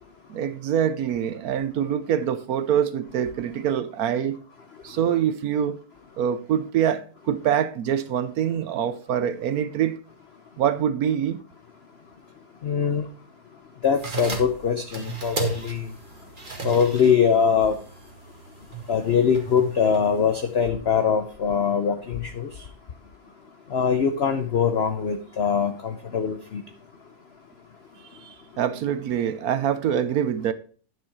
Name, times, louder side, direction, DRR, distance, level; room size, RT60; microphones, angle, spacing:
voice 1, 0.3-4.4 4.8-5.8 6.2-10.0 10.6-11.4 28.2-30.5, right 9 dB, 65° right, 1.1 m, -25 dB
voice 2, 12.6-13.0 13.8-15.9 16.6-17.8 18.9-22.5 23.7-26.6, left 7 dB, 55° left, 0.7 m, -22 dB
sound 1, 13.8-20.7, right 4 dB, 30° right, 1.8 m, -36 dB
10.0 x 6.3 x 4.7 m
omnidirectional pair, 1.9 m